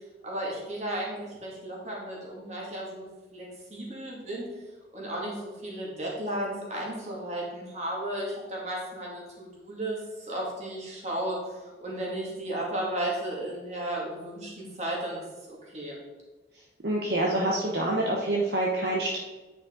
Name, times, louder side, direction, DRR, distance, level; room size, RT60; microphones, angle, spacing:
voice 1, 0.2-4.5 4.9-16.0, right 1 dB, 40° right, -4 dB, 2.2 m, -34 dB
voice 2, 16.8-19.2, right 1 dB, 60° right, -2 dB, 0.9 m, -26 dB
9.1 x 5.1 x 3.8 m, 1.2 s
head